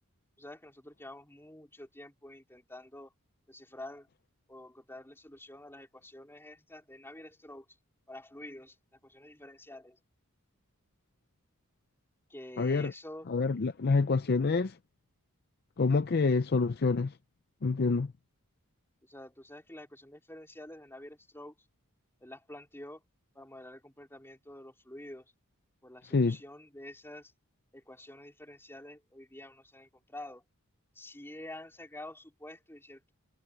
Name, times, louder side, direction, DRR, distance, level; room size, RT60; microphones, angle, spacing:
voice 1, 0.4-3.1 3.5-4.1 4.5-7.7 8.1-8.8 9.0-10.0 12.3-13.3 19.0-21.7 22.2-23.0 23.3-25.3 25.8-27.3 27.7-30.4 30.9-33.1, left 1 dB, 10° left, 3.8 m, -48 dB
voice 2, 12.6-12.9 13.3-14.7 15.8-17.1 17.6-18.1 26.1-26.4, left 4 dB, 45° left, 0.5 m, -27 dB
head